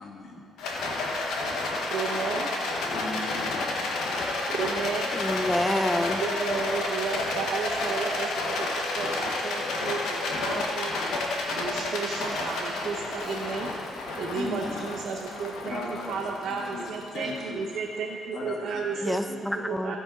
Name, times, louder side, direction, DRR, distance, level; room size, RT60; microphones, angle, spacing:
voice 1, 0.0-2.1 2.9-4.6 14.3-14.9 15.2-15.4 15.6-17.8 18.3-19.7, left 2 dB, 60° left, -2 dB, 1.6 m, -40 dB
Rattle, 0.6-17.9, left 2 dB, 85° left, 1.4 m, -30 dB
voice 2, 1.9-2.5 4.6-5.1 6.2-10.9 11.5-13.7 14.1-15.8 16.1-20.0, right 5 dB, 70° right, -3 dB, 1.2 m, -33 dB
voice 3, 5.1-6.2 19.0-20.0, left 1 dB, 5° left, 9 dB, 0.6 m, -28 dB
15.5 x 5.4 x 5.3 m, 2.3 s
cardioid pair, 90°, 0 cm